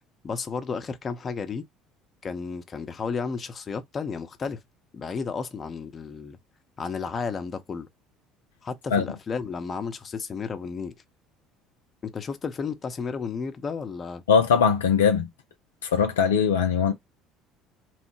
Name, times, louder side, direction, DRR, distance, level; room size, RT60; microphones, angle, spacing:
voice 1, 0.2-1.6 2.2-4.6 4.9-6.4 6.8-7.9 8.6-10.9 12.0-14.2, left 5 dB, 35° left, 0.7 m, -32 dB
voice 2, 14.3-15.3 15.8-16.9, left 6 dB, 85° left, 0.4 m, -21 dB
3.1 x 2.1 x 3.0 m
hypercardioid pair, 65°, 0 cm